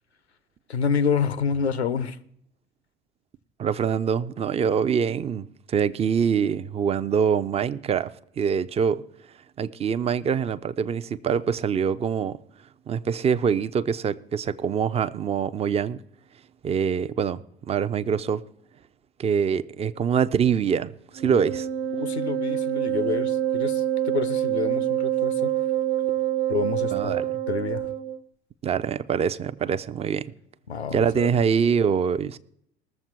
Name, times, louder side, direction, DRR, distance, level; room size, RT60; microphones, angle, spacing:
voice 1, 0.7-2.2 21.2-21.4 21.9-25.5 26.5-27.9 30.7-31.3, left 6 dB, 80° left, 0.8 m, -28 dB
voice 2, 3.6-8.1 8.4-9.0 9.6-12.4 12.9-16.0 16.6-18.4 19.2-21.6 26.9-27.2 28.6-30.3 30.9-32.4, right 7 dB, 20° right, 0.5 m, -24 dB
Wind instrument woodwind instrument, 21.2-28.2, right 11 dB, 60° right, 1.0 m, -26 dB
20.5 x 7.2 x 4.6 m
figure-of-eight pair, 70°, 32 cm